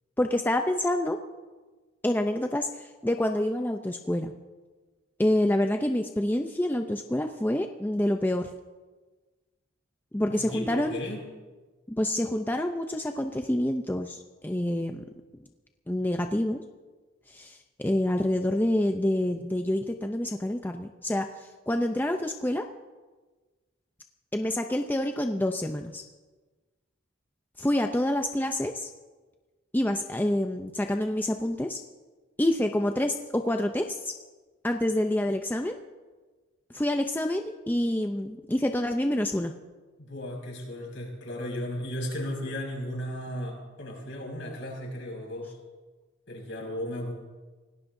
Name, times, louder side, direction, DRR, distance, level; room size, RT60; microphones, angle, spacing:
voice 1, 0.2-1.2 2.0-4.3 5.2-8.5 10.1-11.0 11.9-15.0 15.9-16.6 17.3-21.3 21.7-22.7 24.3-26.0 27.6-28.9 29.7-31.8 32.4-34.1 34.6-35.8 36.7-39.5, left 1 dB, 10° left, 5 dB, 0.5 m, -27 dB
voice 2, 10.3-11.2 40.0-45.6 46.3-47.1, equal, 65° left, -1 dB, 5.6 m, -35 dB
27.5 x 18.0 x 2.7 m, 1.3 s
head